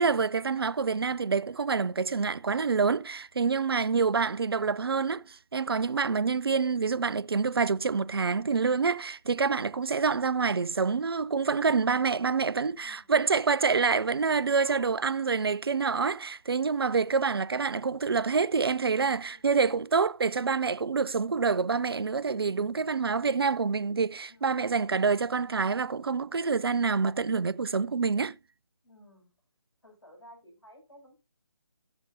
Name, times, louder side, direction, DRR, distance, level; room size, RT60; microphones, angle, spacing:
voice 1, 0.0-28.4, right 5 dB, 65° right, 0.5 m, -27 dB
voice 2, 11.9-12.4 12.8-13.2 14.6-15.0 19.3-19.6 22.4-22.8 24.3-24.7 28.8-29.3 29.8-31.1, equal, 85° left, 7.2 m, -55 dB
16.0 x 6.7 x 2.8 m
figure-of-eight pair, 150°, 14 cm